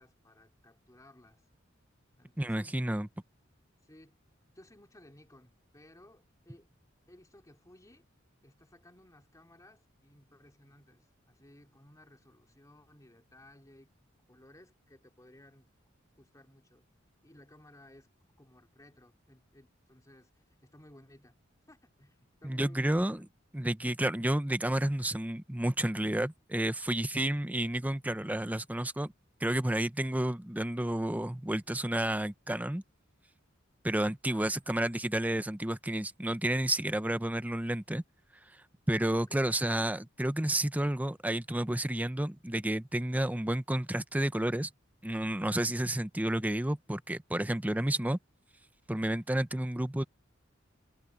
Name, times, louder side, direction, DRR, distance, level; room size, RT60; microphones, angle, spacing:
voice 1, 0.0-1.4 2.2-3.0 3.8-4.2 4.5-6.7 7.1-8.1 8.4-13.9 14.3-15.7 16.2-16.9 17.2-18.1 18.4-20.3 20.6-21.4 21.7-23.2 34.3-34.6 39.2-39.5 47.7-48.2, left 1 dB, 15° left, 3.0 m, -58 dB
voice 2, 2.4-3.1 22.4-23.2 23.5-29.1 29.4-32.8 33.8-38.0 38.9-44.7 45.0-48.2 48.9-50.0, right 1 dB, 10° right, 0.7 m, -31 dB
head